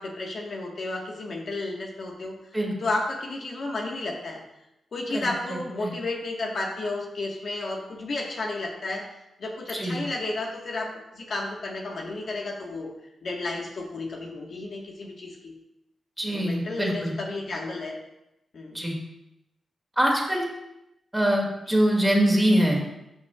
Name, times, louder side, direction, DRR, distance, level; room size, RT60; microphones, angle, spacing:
voice 1, 0.0-2.4 2.8-4.4 4.9-9.0 9.4-10.9 11.1-12.9 13.2-15.5 16.3-17.9 18.5-18.8 21.7-21.8, left 2 dB, 65° left, -1 dB, 1.5 m, -32 dB
voice 2, 5.1-5.9 9.7-10.0 16.2-17.1 18.7-19.0 20.0-20.4 21.1-22.8, right 1 dB, 10° right, -1 dB, 2.2 m, -24 dB
12.5 x 5.7 x 2.4 m, 0.89 s
cardioid pair, 65°, 0 cm